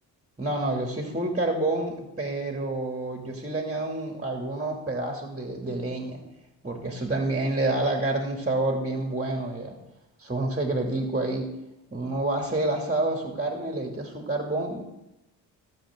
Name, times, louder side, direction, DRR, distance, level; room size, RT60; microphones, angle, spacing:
voice 1, 0.4-6.2 6.6-9.8 10.2-11.5 11.9-14.8, right 2 dB, 15° right, 1 dB, 2.9 m, -28 dB
21.0 x 7.5 x 3.9 m, 0.91 s
supercardioid pair, 55°, 44 cm